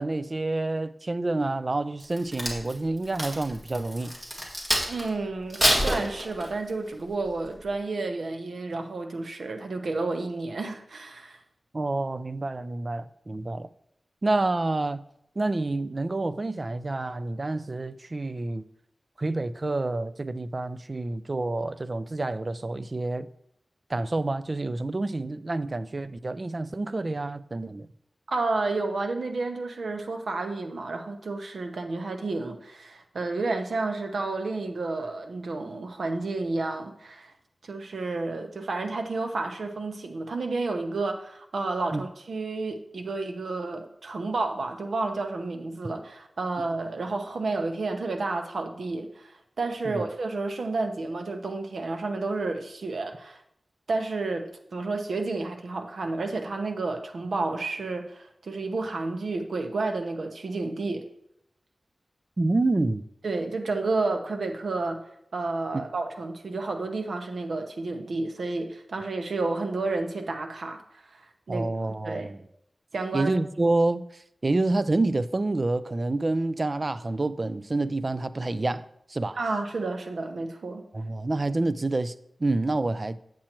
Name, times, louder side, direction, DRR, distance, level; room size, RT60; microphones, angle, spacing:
voice 1, 0.0-4.2 11.7-13.7 14.2-15.0 15.4-18.6 19.2-23.3 23.9-27.9 41.9-42.0 49.9-50.1 62.4-63.0 65.7-65.8 71.5-72.4 73.1-74.0 74.4-78.8 79.1-79.4 80.9-82.1 82.4-83.2, right 2 dB, 40° right, 0.3 m, -28 dB
Crack, 2.0-5.1 5.5-6.7 7.2-7.5, equal, 20° right, 1.9 m, -27 dB
voice 2, 4.9-11.4 28.3-37.3 37.6-53.4 53.9-61.0 63.2-65.0 65.3-71.2 71.5-71.6 72.0-72.3 72.9-73.3 79.4-80.8, right 3 dB, 90° right, 0.8 m, -31 dB
8.7 x 7.5 x 2.9 m
wide cardioid pair, 100°, 0 cm